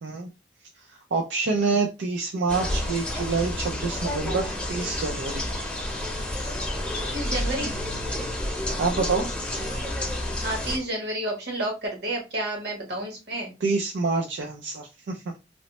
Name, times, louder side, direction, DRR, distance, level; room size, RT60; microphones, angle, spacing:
voice 1, 0.8-5.6 8.8-9.3 13.6-15.4, right 4 dB, 85° right, 2 dB, 0.4 m, -27 dB
sound 1, 2.5-10.8, left 1 dB, 5° left, 0.6 m, -30 dB
voice 2, 7.1-7.7 10.4-13.6, right 1 dB, 65° right, 0 dB, 1.2 m, -30 dB
3.0 x 2.0 x 2.9 m, 0.27 s
head